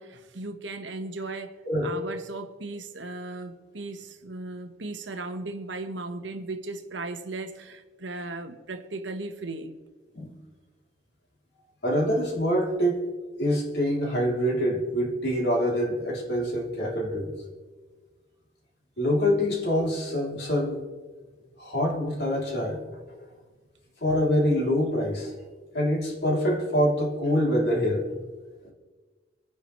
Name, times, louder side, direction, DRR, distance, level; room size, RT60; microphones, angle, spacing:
voice 1, 0.0-1.6 1.8-9.8, right 2 dB, 90° right, 1.3 m, -36 dB
voice 2, 11.8-13.0 13.4-17.3 19.0-20.8 21.6-22.8 24.0-25.3 25.7-28.1, equal, 60° left, 3.0 m, -25 dB
24.5 x 9.8 x 3.1 m
head